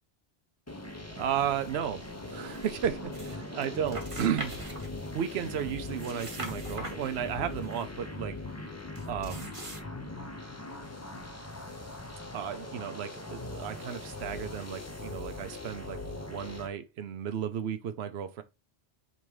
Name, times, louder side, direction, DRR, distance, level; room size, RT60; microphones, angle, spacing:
sound 1, 0.7-16.7, left 2 dB, 15° left, 0.8 m, -41 dB
voice 1, 1.1-4.5 5.1-8.4 9.1-9.5 12.3-18.4, right 8 dB, 75° right, 1.0 m, -34 dB
sound 2, 2.4-3.4 3.6-5.3 5.8-7.8 8.9-9.8, right 2 dB, 30° right, 1.2 m, -43 dB
5.4 x 3.8 x 4.7 m
omnidirectional pair, 1.1 m